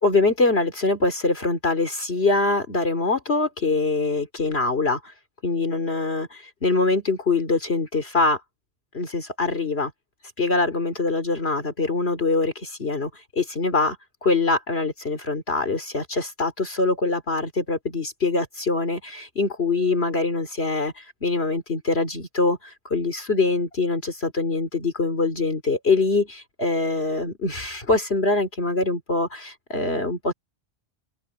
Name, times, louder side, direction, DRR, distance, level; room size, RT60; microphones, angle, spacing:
voice 1, 0.0-5.1 5.4-8.4 8.9-9.9 10.4-13.1 13.4-14.0 14.2-30.3, left 3 dB, 65° left, 3.0 m, -24 dB
open air
omnidirectional pair, 1.1 m